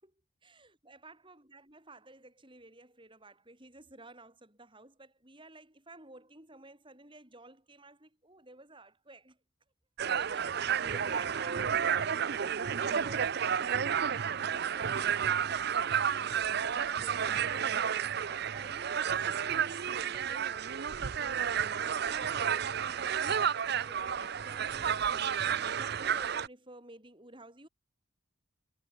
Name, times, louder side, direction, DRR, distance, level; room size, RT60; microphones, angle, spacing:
voice 1, 0.4-9.4 10.1-15.5 15.9-21.0 21.7-27.7, right 2 dB, 25° right, 6.2 m, -53 dB
sound 1, 10.0-26.5, right 8 dB, 50° right, 0.5 m, -31 dB
head